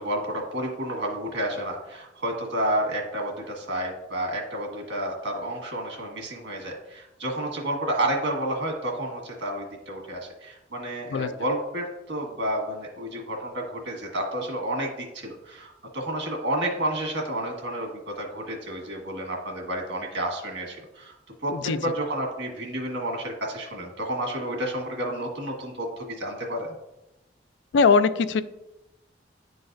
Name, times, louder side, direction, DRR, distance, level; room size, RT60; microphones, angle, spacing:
voice 1, 0.0-21.1 21.4-26.7, right 1 dB, 90° right, 0 dB, 1.6 m, -30 dB
voice 2, 27.7-28.4, left 5 dB, 85° left, 14 dB, 0.3 m, -20 dB
10.0 x 4.0 x 2.6 m, 0.96 s
head